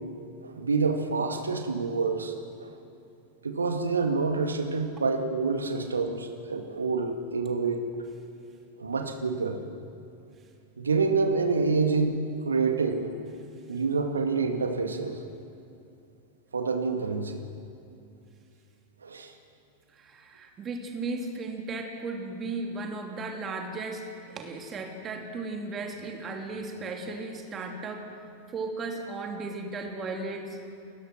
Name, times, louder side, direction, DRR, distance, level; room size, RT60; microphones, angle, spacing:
voice 1, 0.4-2.7 3.4-7.8 8.8-9.6 10.8-12.2 12.4-13.1 13.7-15.2 16.5-17.4 19.0-19.3, right 4 dB, 75° right, 5 dB, 1.9 m, -27 dB
voice 2, 19.9-28.1 28.5-30.6, right 3 dB, 25° right, 2 dB, 3.1 m, -35 dB
29.5 x 16.0 x 6.3 m, 2.7 s
figure-of-eight pair, 90°, 0 cm